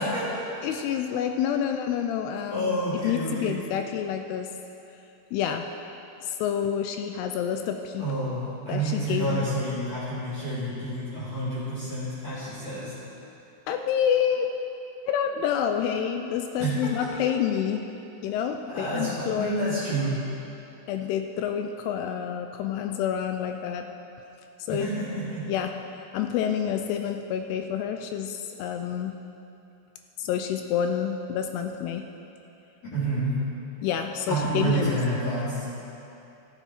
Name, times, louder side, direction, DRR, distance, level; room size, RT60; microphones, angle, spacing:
voice 1, 0.0-0.5 2.5-3.5 8.0-12.9 16.6-17.1 18.7-20.2 24.7-25.5 32.9-33.4 34.3-35.6, right 1 dB, 40° left, -12 dB, 3.4 m, -29 dB
voice 2, 0.6-4.5 5.3-5.7 6.2-8.1 8.7-9.5 13.7-14.5 15.1-17.9 18.2-19.6 20.9-23.9 24.6-24.9 25.5-25.7 26.1-29.1 30.2-32.1 33.8-35.0, left 8 dB, 85° left, 6 dB, 2.4 m, -28 dB
14.5 x 8.9 x 4.4 m, 2.8 s
omnidirectional pair, 5.0 m